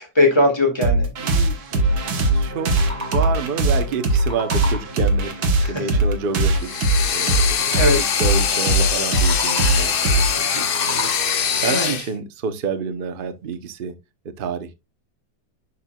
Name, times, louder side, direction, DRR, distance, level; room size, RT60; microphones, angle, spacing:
voice 1, 0.0-1.1 5.6-6.0 7.8-8.1 11.6-12.0, left 1 dB, 15° left, 2.2 m, -20 dB
sound 1, 0.8-11.9, right 2 dB, 65° right, 1.7 m, -21 dB
voice 2, 1.2-2.0 2.3-7.6 7.9-13.9 14.4-14.7, right 5 dB, 40° right, 0.8 m, -29 dB
sound 2, 2.5-3.6 3.9-5.1 9.0-9.9 10.4-11.5, equal, 10° right, 1.9 m, -34 dB
sound 3, 6.6-12.1, left 7 dB, 65° left, 0.5 m, -23 dB
11.0 x 4.5 x 2.3 m
omnidirectional pair, 1.8 m